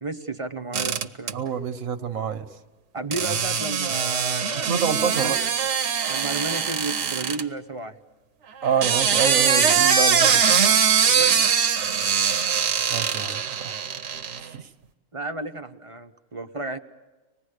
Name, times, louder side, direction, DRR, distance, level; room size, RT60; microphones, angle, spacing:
voice 1, 0.0-1.5 2.9-4.7 5.1-5.5 6.1-8.0 11.0-11.4 15.1-16.8, right 2 dB, 30° right, 7 dB, 0.8 m, -33 dB
sound 1, 0.7-1.3 3.1-7.4 8.6-14.4, right 7 dB, 60° right, 1.2 m, -22 dB
voice 2, 1.3-2.5 4.5-5.4 8.6-10.4 12.9-13.8 14.4-14.7, right 7 dB, 85° right, 9 dB, 1.6 m, -27 dB
25.0 x 20.0 x 6.6 m, 1.2 s
omnidirectional pair, 1.4 m